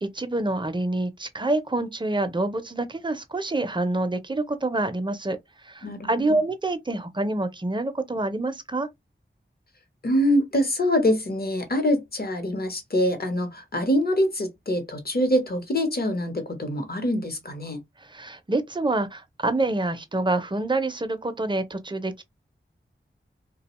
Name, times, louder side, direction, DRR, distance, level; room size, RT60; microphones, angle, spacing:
voice 1, 0.0-5.4 5.7-8.9 18.0-22.2, right 2 dB, 20° right, 0.5 m, -27 dB
voice 2, 5.8-6.4 10.0-17.8, equal, 50° left, 0.9 m, -24 dB
2.3 x 2.2 x 3.0 m
cardioid pair, 40°, 21 cm